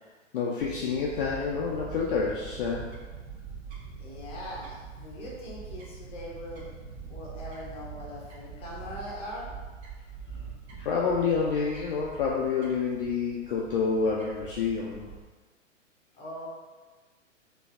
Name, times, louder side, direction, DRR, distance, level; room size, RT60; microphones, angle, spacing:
voice 1, 0.3-2.9 10.8-15.1, left 5 dB, 45° left, -3 dB, 0.5 m, -28 dB
Fowl / Bird, 0.6-15.2, right 5 dB, 60° right, 1.1 m, -44 dB
voice 2, 4.0-6.7 7.1-9.5 16.1-16.4, left 1 dB, 15° left, -5 dB, 0.8 m, -41 dB
4.0 x 2.6 x 2.4 m, 1.3 s
figure-of-eight pair, 115°, 38 cm